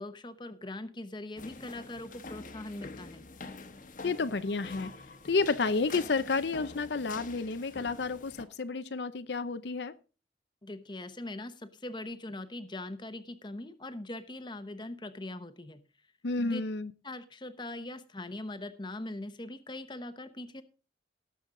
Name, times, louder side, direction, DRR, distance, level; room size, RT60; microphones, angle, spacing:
voice 1, 0.0-3.2 10.6-15.8 16.4-16.6 17.0-20.6, left 1 dB, 25° left, 0.9 m, -41 dB
sound 1, 1.4-8.4, left 3 dB, 45° left, 1.1 m, -46 dB
voice 2, 4.0-4.9 5.2-9.9 16.2-16.9, left 4 dB, 75° left, 0.6 m, -31 dB
18.0 x 7.0 x 3.8 m
head